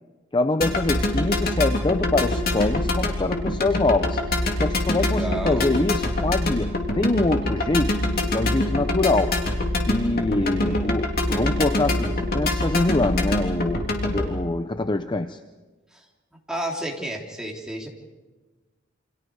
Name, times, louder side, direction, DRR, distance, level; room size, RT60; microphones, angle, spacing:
voice 1, 0.3-4.2 4.6-8.0 8.3-9.4 9.9-15.4, left 2 dB, 25° left, 9 dB, 0.6 m, -24 dB
sound 1, 0.6-14.3, left 1 dB, 50° left, 3.2 m, -25 dB
voice 2, 4.9-5.7 10.4-10.9 15.9-16.0 16.5-17.9, right 1 dB, 5° right, -1 dB, 3.3 m, -32 dB
29.0 x 26.5 x 4.8 m, 1.2 s
head